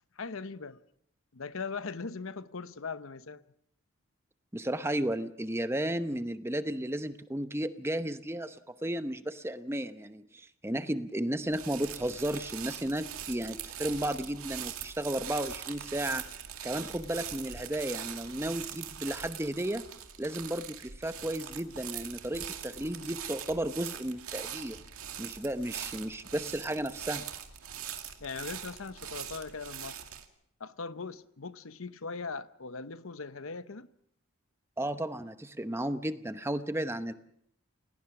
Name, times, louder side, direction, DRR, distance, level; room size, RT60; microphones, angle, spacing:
voice 1, 0.2-0.8 1.3-3.4 28.2-30.0 30.6-33.9, left 4 dB, 70° left, 0.8 m, -40 dB
voice 2, 4.5-16.2 16.6-19.8 20.2-24.8 25.2-27.2 34.8-37.1, right 1 dB, 10° right, 0.8 m, -34 dB
sound 1, 11.5-30.2, right 9 dB, 85° right, 2.2 m, -42 dB
29.0 x 18.0 x 6.0 m
head